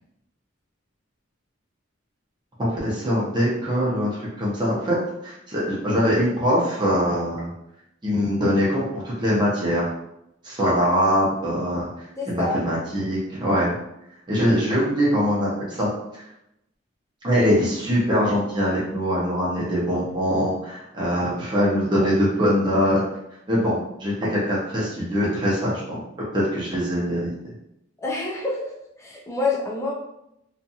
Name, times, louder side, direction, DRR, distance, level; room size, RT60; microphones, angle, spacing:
voice 1, 2.6-5.0 5.2-7.5 8.0-9.9 10.4-13.7 14.3-15.9 16.1-16.2 17.2-23.0 23.5-26.0 26.3-27.3, equal, 20° right, -6 dB, 0.7 m, -23 dB
voice 2, 12.2-12.6 28.0-28.7 29.0-29.9, left 3 dB, 15° left, -2 dB, 0.4 m, -27 dB
2.5 x 2.4 x 2.7 m, 0.81 s
head